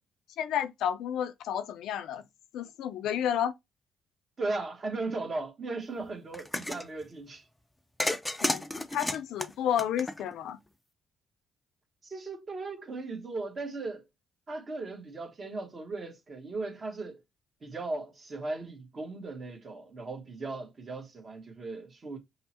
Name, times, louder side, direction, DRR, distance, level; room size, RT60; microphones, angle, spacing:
voice 1, 0.4-2.2 2.5-3.5 8.4-10.6, left 9 dB, 85° left, 0.4 m, -31 dB
voice 2, 4.4-7.4 12.0-14.0 14.5-17.2 17.6-22.2, right 3 dB, 40° right, 1.1 m, -37 dB
sound 1, 6.3-6.9 8.0-10.5, left 1 dB, 10° left, 0.4 m, -32 dB
5.4 x 2.1 x 2.8 m
cardioid pair, 90°, 0 cm